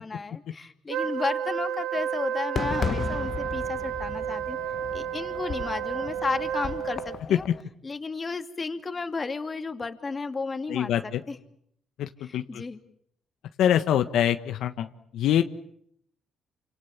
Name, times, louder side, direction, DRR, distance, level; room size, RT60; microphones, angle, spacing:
voice 1, 0.0-4.6 4.9-7.5 7.8-11.4 12.2-12.8, left 4 dB, 30° left, 7 dB, 2.6 m, -33 dB
Wind instrument woodwind instrument, 0.9-7.2, right 9 dB, 90° right, 1.3 m, -31 dB
Fireworks, 2.6-7.6, left 6 dB, 45° left, 1.4 m, -35 dB
voice 2, 10.7-11.2 12.0-12.6 13.6-14.9 15.1-15.4, left 10 dB, 80° left, 8 dB, 1.3 m, -24 dB
29.0 x 26.5 x 7.3 m, 0.70 s
cardioid pair, 90°, 0 cm